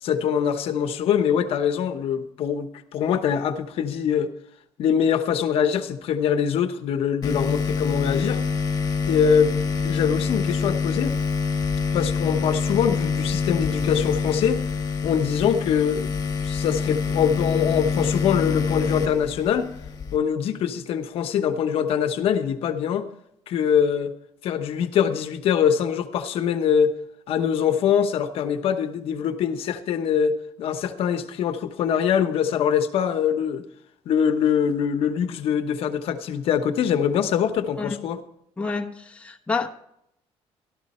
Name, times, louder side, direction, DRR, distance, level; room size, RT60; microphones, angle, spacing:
voice 1, 0.0-4.3 4.8-8.4 9.0-11.1 11.9-14.6 15.0-19.7 20.1-23.1 23.5-24.1 24.4-26.9 27.3-33.7 34.1-38.2, left 8 dB, 65° left, 8 dB, 1.0 m, -23 dB
sound 1, 7.2-20.2, left 5 dB, 35° left, 1.5 m, -26 dB
voice 2, 38.6-39.7, left 4 dB, 10° left, 0 dB, 1.0 m, -28 dB
13.0 x 13.0 x 4.2 m, 0.77 s
cardioid pair, 150°, 11 cm